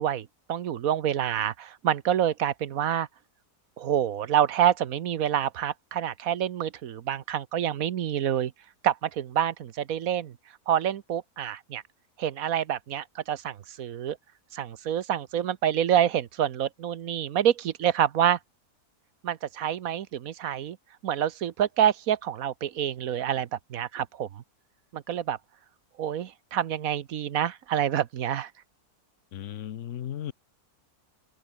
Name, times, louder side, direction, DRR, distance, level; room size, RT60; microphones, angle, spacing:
voice 1, 0.0-3.1 3.8-8.5 8.8-10.3 10.7-11.8 12.2-14.2 14.5-18.4 19.2-20.8 21.0-24.4 24.9-25.4 26.0-28.5, right 10 dB, 65° right, 1.2 m, -27 dB
voice 2, 29.3-30.3, left 11 dB, 60° left, 1.0 m, -35 dB
open air
omnidirectional pair, 1.6 m